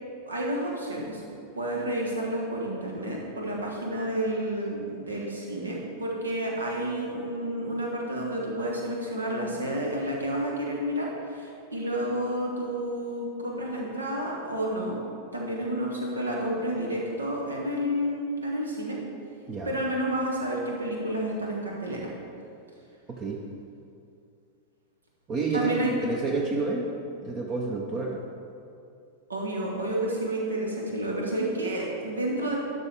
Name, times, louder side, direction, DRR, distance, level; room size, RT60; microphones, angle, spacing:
voice 1, 0.3-1.2 1.5-15.0 15.3-19.0 19.6-22.1 25.5-25.9 29.3-32.6, right 1 dB, 75° right, -2 dB, 1.5 m, -30 dB
voice 2, 23.1-23.4 25.3-26.9 27.2-28.2, right 3 dB, 30° right, 1 dB, 0.7 m, -29 dB
12.0 x 6.0 x 3.5 m, 2.5 s
figure-of-eight pair, 90°, 0 cm